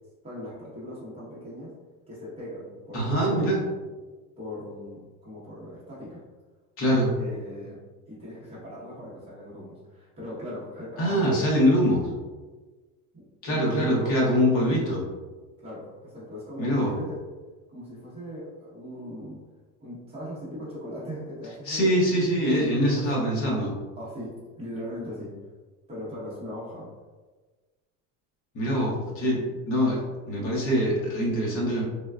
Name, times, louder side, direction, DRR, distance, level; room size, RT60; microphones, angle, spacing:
voice 1, 0.2-1.7 2.1-3.7 4.4-6.2 7.2-7.8 8.1-11.5 13.4-14.9 15.6-17.2 17.7-19.4 19.8-22.0 22.9-23.1 24.0-25.3 25.9-26.9, equal, 15° right, -8 dB, 0.9 m, -39 dB
voice 2, 2.9-3.6 6.8-7.1 11.0-12.0 13.4-15.0 16.6-16.9 21.7-23.7 28.5-30.0 30.3-31.8, equal, 35° left, -3 dB, 0.8 m, -23 dB
3.5 x 2.2 x 2.2 m, 1.3 s
cardioid pair, 165°, 39 cm